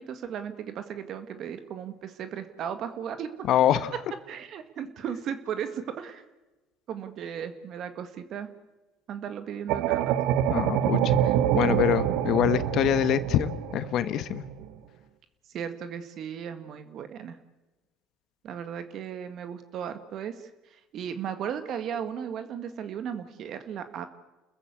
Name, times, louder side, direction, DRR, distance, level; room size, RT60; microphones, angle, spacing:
voice 1, 0.0-3.5 4.3-6.2 6.9-8.5 9.1-10.1 15.5-17.4 18.4-24.1, right 8 dB, 55° right, 9 dB, 1.8 m, -36 dB
voice 2, 3.5-3.9 10.5-11.2 11.5-14.4, left 11 dB, 60° left, 13 dB, 1.3 m, -25 dB
sound 1, 9.7-14.7, right 11 dB, 70° right, 1.2 m, -26 dB
30.0 x 14.5 x 8.3 m, 1.1 s
supercardioid pair, 85°, 0 cm